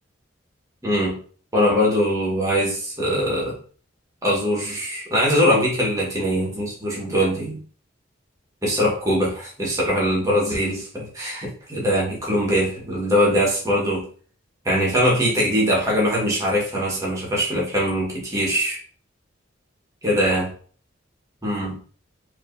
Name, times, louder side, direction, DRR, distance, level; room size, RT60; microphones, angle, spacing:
voice 1, 0.8-1.2 1.5-3.6 4.2-7.6 8.6-14.1 14.6-18.8 20.0-20.5 21.4-21.8, equal, 15° right, -4 dB, 1.5 m, -22 dB
4.8 x 3.2 x 2.7 m, 0.43 s
head